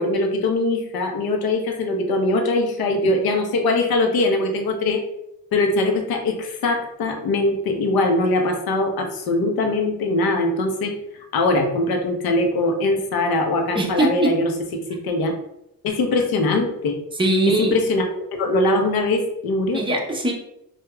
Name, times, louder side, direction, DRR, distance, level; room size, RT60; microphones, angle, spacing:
voice 1, 0.0-5.0 5.5-10.9 11.3-15.4 15.8-17.0 17.5-18.0 18.4-19.8, left 2 dB, 65° left, 4 dB, 0.8 m, -21 dB
voice 2, 13.7-14.3 17.2-17.8 19.7-20.3, right 2 dB, 15° right, 0 dB, 0.7 m, -21 dB
4.7 x 2.4 x 2.2 m, 0.80 s
cardioid pair, 100°, 39 cm